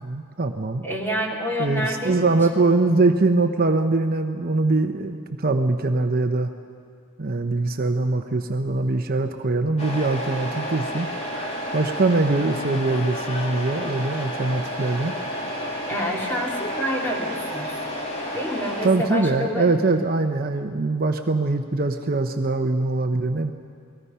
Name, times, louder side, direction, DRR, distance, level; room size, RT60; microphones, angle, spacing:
voice 1, 0.0-0.8 1.6-6.5 7.2-11.1 11.7-15.1 18.8-23.5, right 3 dB, 45° right, 6 dB, 0.9 m, -22 dB
voice 2, 0.8-2.2 15.9-17.8 18.3-19.7, equal, 10° left, -1 dB, 2.8 m, -28 dB
Truck, 9.8-18.9, equal, 30° left, 3.0 m, -31 dB
29.0 x 19.5 x 5.7 m, 2.2 s
head